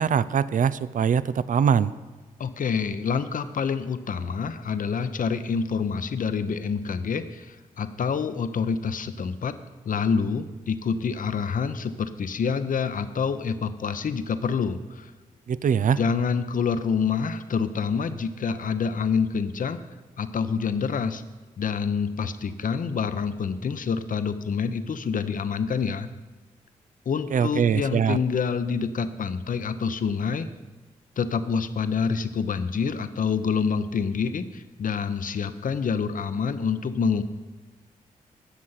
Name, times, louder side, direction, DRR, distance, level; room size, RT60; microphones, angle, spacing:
voice 1, 0.0-1.9 15.5-16.0 27.3-28.2, right 7 dB, 60° right, 17 dB, 0.5 m, -22 dB
voice 2, 2.4-9.5 9.8-15.1 15.9-19.8 20.2-21.2 21.6-26.1 27.1-30.5 31.2-37.2, left 6 dB, 65° left, 11 dB, 0.9 m, -27 dB
17.5 x 6.4 x 5.7 m, 1.3 s
cardioid pair, 50°, 15 cm